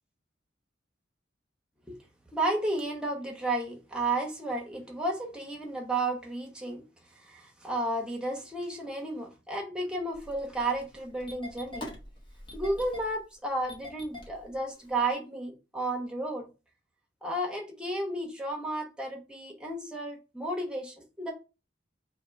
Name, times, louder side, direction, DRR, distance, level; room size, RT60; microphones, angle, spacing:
voice 1, 2.3-11.9 12.5-16.5 17.2-21.3, right 2 dB, 5° right, 0.9 m, -33 dB
Engine starting, 10.1-15.1, left 1 dB, 25° left, 1.0 m, -45 dB
2.9 x 2.9 x 4.5 m
head